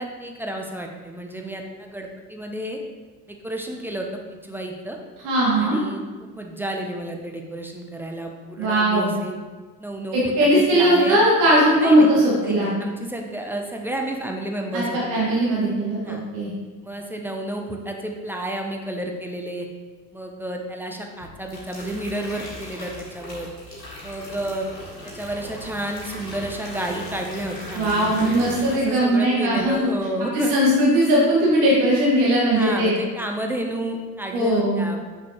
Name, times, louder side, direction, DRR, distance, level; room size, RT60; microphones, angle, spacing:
voice 1, 0.0-2.8 3.3-4.1 4.4-5.0 5.5-9.3 9.8-11.2 11.8-12.1 12.4-15.2 16.0-16.2 16.8-19.7 20.1-23.5 24.0-24.7 25.0-28.1 28.7-30.5 32.5-35.0, right 1 dB, 5° right, 2 dB, 0.4 m, -31 dB
voice 2, 5.2-5.8 8.6-9.1 10.1-12.7 14.7-16.5 27.8-29.8 30.3-33.0 34.3-34.9, right 1 dB, 55° right, -5 dB, 1.7 m, -19 dB
sound 1, 21.2-29.2 29.5-29.9, left 1 dB, 90° left, 1.5 m, -38 dB
6.7 x 5.8 x 2.9 m, 1.4 s
figure-of-eight pair, 60°, 49 cm